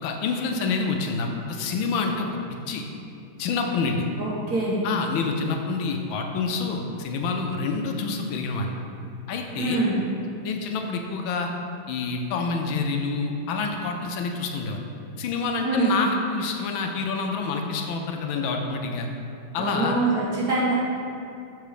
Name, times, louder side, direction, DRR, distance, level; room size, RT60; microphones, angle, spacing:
voice 1, 0.0-2.3 2.7-2.8 3.4-4.1 4.8-8.7 9.3-9.8 10.4-11.5 11.9-14.8 15.2-19.1 19.5-20.0, left 4 dB, 80° left, 3 dB, 1.4 m, -27 dB
voice 2, 4.2-4.9 9.6-10.0 15.6-16.0 19.6-20.8, right 2 dB, 55° right, -6 dB, 1.8 m, -24 dB
6.8 x 3.9 x 4.9 m, 2.6 s
omnidirectional pair, 2.2 m